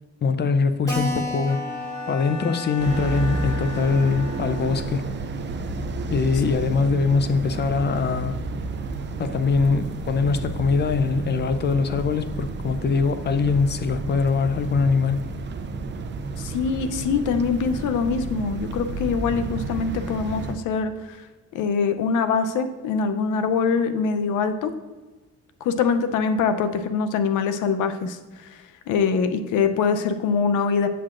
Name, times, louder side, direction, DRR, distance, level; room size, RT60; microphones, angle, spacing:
voice 1, 0.2-1.6 2.1-5.1 6.1-8.4 9.2-15.2, left 4 dB, 35° left, 0.5 m, -22 dB
Keyboard (musical), 0.9-5.9 6.2-6.3 6.6-6.7 6.9-7.0 7.6-7.9, left 1 dB, 10° left, 2.3 m, -35 dB
Bowed string instrument, 1.5-5.2, left 2 dB, 60° left, 0.9 m, -38 dB
sound 1, 2.8-20.5, right 3 dB, 35° right, 0.6 m, -31 dB
voice 2, 16.4-21.2 21.5-24.7 25.6-30.9, left 5 dB, 90° left, 0.6 m, -24 dB
7.8 x 7.5 x 2.5 m
cardioid pair, 90°, 30 cm